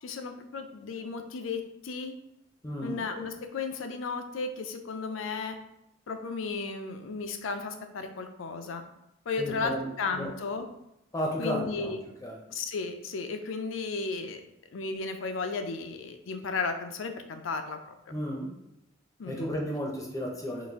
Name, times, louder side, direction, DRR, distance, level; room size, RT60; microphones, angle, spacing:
voice 1, 0.0-2.1 2.8-5.6 6.1-8.8 9.3-10.7 11.4-12.0 12.5-14.4 14.7-18.1 19.2-19.5, left 4 dB, 85° left, 7 dB, 0.5 m, -34 dB
voice 2, 2.6-3.0 9.4-9.9 10.1-10.3 11.1-12.4 18.1-18.5 19.2-20.7, equal, 15° left, -1 dB, 0.5 m, -33 dB
3.9 x 2.5 x 3.5 m, 0.85 s
head